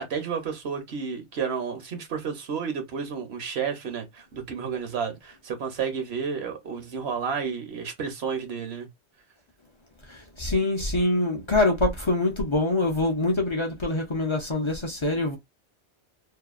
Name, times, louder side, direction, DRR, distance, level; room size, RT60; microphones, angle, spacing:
voice 1, 0.0-8.9, right 6 dB, 70° right, 1.0 m, -31 dB
voice 2, 10.1-15.4, left 2 dB, 40° left, 0.5 m, -25 dB
2.7 x 2.3 x 2.4 m
omnidirectional pair, 1.2 m